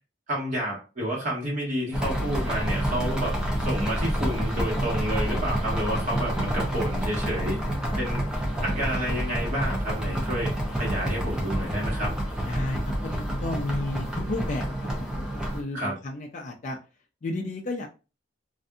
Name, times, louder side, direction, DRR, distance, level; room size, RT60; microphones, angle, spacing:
voice 1, 0.3-7.6 8.0-8.2 8.6-12.1 15.7-15.9, equal, 40° right, -4 dB, 1.4 m, -30 dB
sound 1, 1.9-15.6, right 1 dB, 5° right, 0.6 m, -28 dB
voice 2, 12.4-16.8 17.2-17.9, left 2 dB, 40° left, 1 dB, 0.3 m, -33 dB
2.6 x 2.5 x 2.2 m, 0.31 s
head